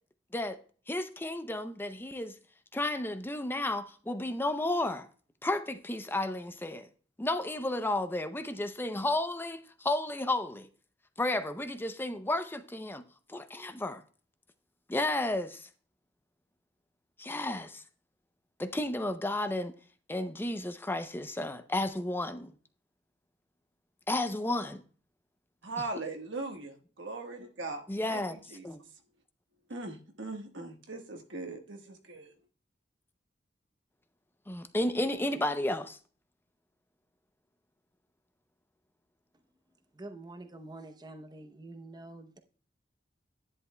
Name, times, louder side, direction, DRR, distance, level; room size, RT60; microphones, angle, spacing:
voice 1, 0.9-2.4 2.7-5.1 5.4-6.9 7.2-10.7 11.2-13.0 13.3-14.0 14.9-15.7 17.2-17.8 18.6-19.7 20.1-22.5 24.1-24.8 27.9-28.4 28.6-28.8 34.5-36.0, left 1 dB, 10° left, 0.5 m, -32 dB
voice 2, 25.6-28.6 29.7-32.3, right 3 dB, 75° right, 1.4 m, -40 dB
voice 3, 39.9-42.4, right 2 dB, 25° right, 0.7 m, -46 dB
10.5 x 10.5 x 2.2 m
head